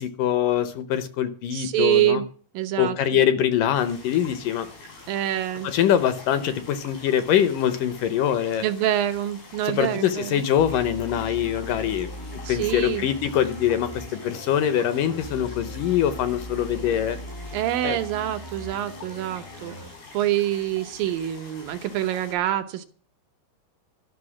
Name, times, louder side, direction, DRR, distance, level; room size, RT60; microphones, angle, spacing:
voice 1, 0.0-2.2 2.8-4.7 5.6-8.6 9.6-12.1 12.5-17.2 17.8-18.0, left 10 dB, 70° left, 12 dB, 2.3 m, -23 dB
voice 2, 1.5-2.3 2.5-3.0 5.1-5.7 8.6-10.4 12.4-13.1 17.5-19.8 20.1-22.9, right 12 dB, 70° right, 9 dB, 2.5 m, -25 dB
sound 1, 3.7-22.4, left 3 dB, 85° left, 6.7 m, -46 dB
sound 2, 10.6-19.9, equal, 25° left, 0.4 m, -39 dB
13.0 x 6.7 x 9.8 m, 0.42 s
omnidirectional pair, 4.4 m